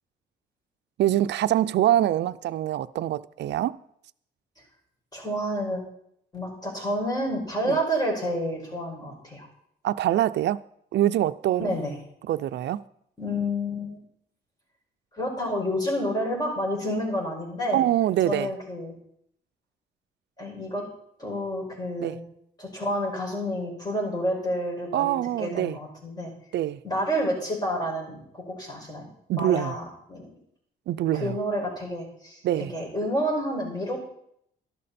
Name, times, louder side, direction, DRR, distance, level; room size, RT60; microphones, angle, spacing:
voice 1, 1.0-3.8 7.7-7.8 9.8-10.6 10.9-11.7 12.3-12.8 17.7-18.5 22.0-22.1 24.9-25.8 26.5-26.8 29.3-29.7 30.9-31.4 32.4-32.7, right 12 dB, 70° right, 0.5 m, -24 dB
voice 2, 5.1-5.8 6.3-9.5 11.6-12.0 13.2-14.0 15.1-17.8 18.2-18.9 20.4-20.8 21.2-22.2 22.6-26.3 26.8-29.1 29.3-30.3 31.1-34.0, equal, 20° left, 5.7 m, -29 dB
13.0 x 12.0 x 4.3 m
cardioid pair, 100°, 18 cm